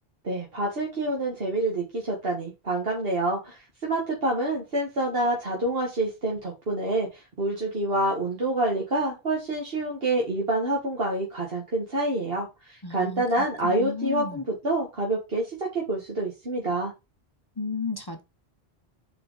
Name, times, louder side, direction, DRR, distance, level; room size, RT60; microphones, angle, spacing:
voice 1, 0.2-16.9, right 2 dB, 60° right, 1.8 m, -27 dB
voice 2, 12.8-14.4 17.6-18.2, left 3 dB, 25° left, 0.7 m, -33 dB
6.2 x 4.4 x 4.0 m
omnidirectional pair, 1.1 m